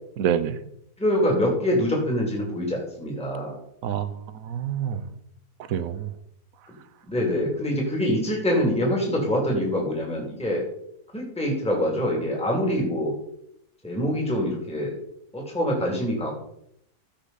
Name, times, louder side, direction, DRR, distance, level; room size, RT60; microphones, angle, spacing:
voice 1, 0.2-0.6 3.8-5.0 5.7-6.1, right 9 dB, 65° right, 13 dB, 1.1 m, -27 dB
voice 2, 1.0-3.6 7.1-10.6 11.1-13.1 13.8-14.9 15.3-16.3, equal, 5° left, -2 dB, 2.5 m, -25 dB
14.5 x 5.8 x 4.0 m, 0.74 s
omnidirectional pair, 1.6 m